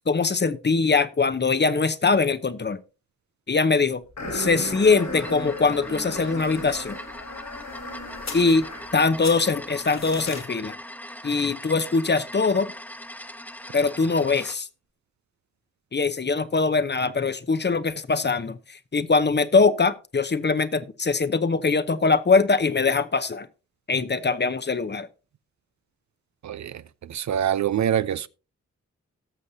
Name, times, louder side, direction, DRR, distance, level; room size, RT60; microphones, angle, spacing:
voice 1, 0.1-2.8 3.5-4.0 4.3-7.0 8.3-8.6 8.9-10.8 11.2-12.7 13.7-14.7 15.9-23.5 23.9-25.1, left 4 dB, 35° left, 0.8 m, -22 dB
sound 1, 4.2-9.1, left 1 dB, 75° left, 4.3 m, -36 dB
sound 2, 4.5-14.6, left 1 dB, 5° left, 1.1 m, -40 dB
sound 3, 8.2-9.0 9.2-10.5, left 4 dB, 60° left, 2.4 m, -37 dB
voice 2, 27.1-28.3, right 9 dB, 65° right, 0.5 m, -24 dB
18.0 x 6.4 x 2.7 m
cardioid pair, 45°, 30 cm